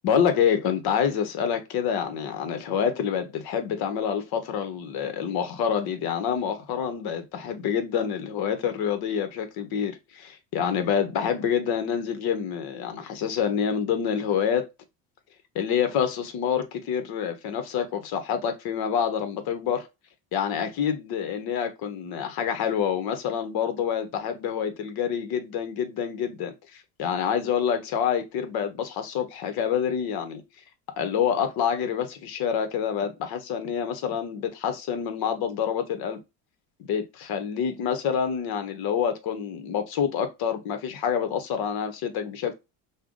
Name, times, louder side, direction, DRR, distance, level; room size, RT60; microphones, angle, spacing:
voice 1, 0.0-14.7 15.5-19.9 20.3-26.5 27.0-30.4 31.0-36.2 36.9-42.5, left 8 dB, 55° left, 1.1 m, -27 dB
5.5 x 2.2 x 3.8 m
cardioid pair, 145°, 44 cm